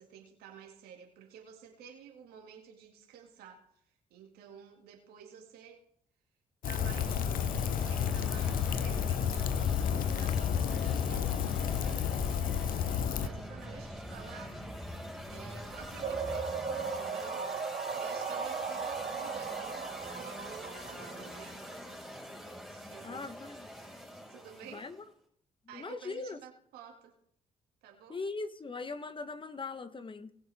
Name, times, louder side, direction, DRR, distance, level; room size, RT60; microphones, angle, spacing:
voice 1, 0.0-3.8 4.1-5.8 6.6-14.6 15.1-19.9 20.1-21.7 22.7-23.3 24.3-24.9 25.7-27.1 27.8-28.2, right 8 dB, 75° right, 2.4 m, -52 dB
Rain, 6.6-13.3, left 8 dB, 60° left, 0.9 m, -31 dB
sound 1, 6.8-25.1, equal, ahead, 5.8 m, -43 dB
sound 2, 16.0-21.7, right 5 dB, 55° right, 1.8 m, -37 dB
voice 2, 23.0-23.7 24.7-25.0 25.6-26.4 28.1-30.4, left 3 dB, 30° left, 1.2 m, -40 dB
20.0 x 7.2 x 3.6 m
hypercardioid pair, 50°, 16 cm